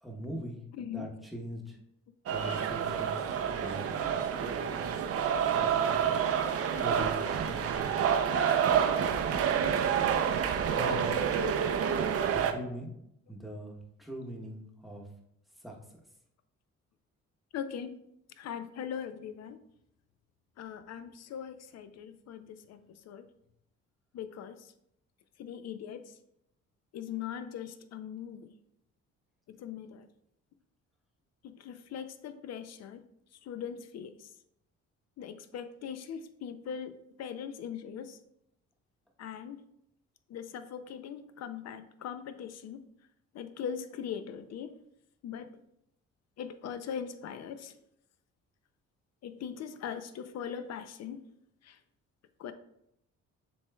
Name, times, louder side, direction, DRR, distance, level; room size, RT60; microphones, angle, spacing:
voice 1, 0.0-0.6 0.9-1.8 2.3-4.9 5.5-6.1 6.8-8.0 10.7-11.2 12.2-12.9 13.3-15.0 15.6-15.7, right 1 dB, ahead, -1 dB, 0.9 m, -41 dB
voice 2, 0.8-1.1 5.1-5.2 17.5-17.9 18.4-19.6 20.6-23.3 24.1-24.7 25.4-26.2 26.9-28.5 29.5-30.1 31.4-33.0 33.4-34.3 35.2-38.2 39.2-39.6 40.3-42.8 43.3-44.8 45.2-45.5 46.4-47.7 49.2-51.3 51.6-51.8 52.4-52.5, left 8 dB, 60° left, 11 dB, 0.5 m, -40 dB
sound 1, 2.3-12.5, right 8 dB, 50° right, 0.5 m, -28 dB
7.0 x 3.1 x 2.2 m, 0.77 s
cardioid pair, 90°, 30 cm